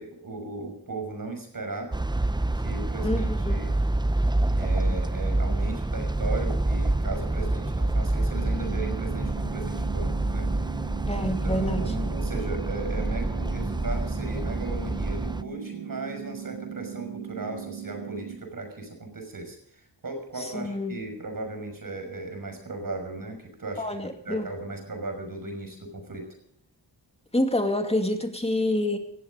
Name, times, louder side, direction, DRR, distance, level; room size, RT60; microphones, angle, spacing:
voice 1, 0.0-1.9 2.5-3.8 4.5-10.8 11.1-23.8 24.2-26.3, right 2 dB, 45° right, 5 dB, 5.9 m, -36 dB
sound 1, 1.9-15.4, right 2 dB, 10° right, 0.6 m, -27 dB
voice 2, 3.0-3.6 11.1-12.0 20.4-21.0 23.8-24.5 27.3-29.0, left 1 dB, 15° left, 5 dB, 2.5 m, -27 dB
sound 2, 8.3-18.4, right 9 dB, 85° right, 2.1 m, -38 dB
18.5 x 15.0 x 5.2 m, 0.67 s
wide cardioid pair, 120°, 45 cm